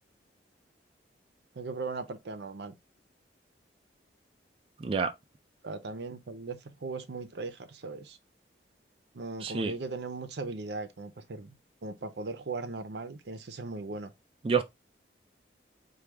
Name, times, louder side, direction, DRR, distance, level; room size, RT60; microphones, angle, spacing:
voice 1, 1.5-2.8 5.6-8.2 9.1-11.6 11.8-14.1, right 3 dB, 75° right, 0.6 m, -38 dB
voice 2, 9.4-9.7 14.4-14.6, right 5 dB, 30° right, 0.3 m, -27 dB
4.7 x 2.3 x 3.2 m
head